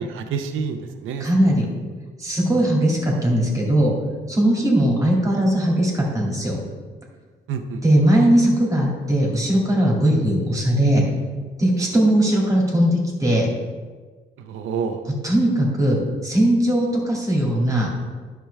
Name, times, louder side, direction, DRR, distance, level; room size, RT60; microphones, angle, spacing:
voice 1, 0.0-1.5 2.5-2.6 7.5-7.8 14.4-15.0, right 5 dB, 85° right, 7 dB, 0.8 m, -28 dB
voice 2, 1.2-1.7 2.2-3.9 4.3-6.6 7.8-11.0 11.6-13.5 15.2-17.9, right 1 dB, 15° right, -3 dB, 2.3 m, -19 dB
10.5 x 6.1 x 3.4 m, 1.4 s
cardioid pair, 90°, 20 cm